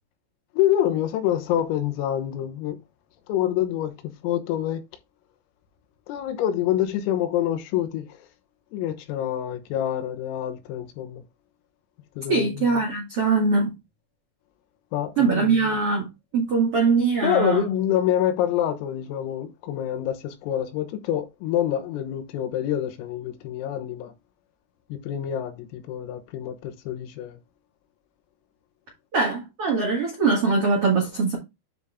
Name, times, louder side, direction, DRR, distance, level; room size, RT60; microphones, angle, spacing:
voice 1, 0.6-2.8 3.3-4.8 6.1-8.2 8.7-11.2 12.2-12.7 14.9-15.7 17.2-24.1 24.9-27.4, left 11 dB, 85° left, 3.6 m, -26 dB
voice 2, 12.3-13.7 15.2-16.1 16.3-17.6 29.1-31.4, right 4 dB, 85° right, 1.3 m, -22 dB
9.9 x 4.0 x 3.5 m
omnidirectional pair, 6.0 m